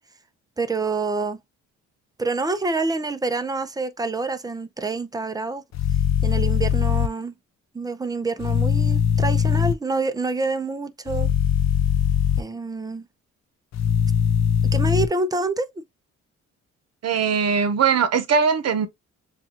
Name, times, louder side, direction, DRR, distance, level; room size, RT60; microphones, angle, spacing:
voice 1, 0.6-1.4 2.2-5.6 6.2-7.3 7.7-11.3 12.4-13.1 14.6-15.7, right 3 dB, 15° right, 0.6 m, -27 dB
sound 1, 5.7-7.1 8.4-9.7 11.1-12.4 13.7-15.1, left 9 dB, 60° left, 0.6 m, -20 dB
voice 2, 17.0-18.9, right 6 dB, 55° right, 0.9 m, -20 dB
7.0 x 2.5 x 2.9 m
cardioid pair, 90°, 30 cm